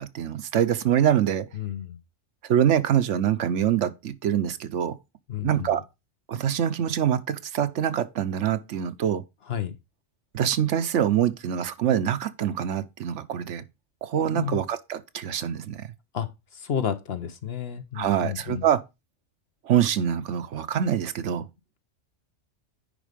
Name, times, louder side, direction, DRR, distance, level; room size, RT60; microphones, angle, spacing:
voice 1, 0.0-1.5 2.4-5.0 5.4-5.8 6.3-9.2 10.3-13.6 14.0-15.9 17.9-18.8 19.6-21.5, right 9 dB, 75° right, 1.0 m, -25 dB
voice 2, 1.5-2.0 5.3-5.8 9.5-9.7 14.3-14.6 16.1-16.3 16.5-18.7, left 8 dB, 60° left, 1.1 m, -31 dB
10.0 x 4.0 x 5.1 m
omnidirectional pair, 1.2 m